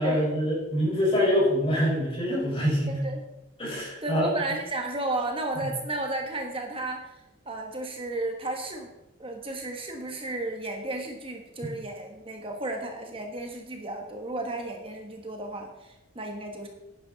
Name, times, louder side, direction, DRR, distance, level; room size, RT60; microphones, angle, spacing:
voice 1, 0.0-3.0 3.6-4.3, equal, 25° left, -4 dB, 4.9 m, -25 dB
voice 2, 4.0-7.1 7.4-8.9 9.2-16.7, right 2 dB, 25° right, 3 dB, 1.3 m, -33 dB
10.5 x 10.0 x 4.0 m, 0.92 s
head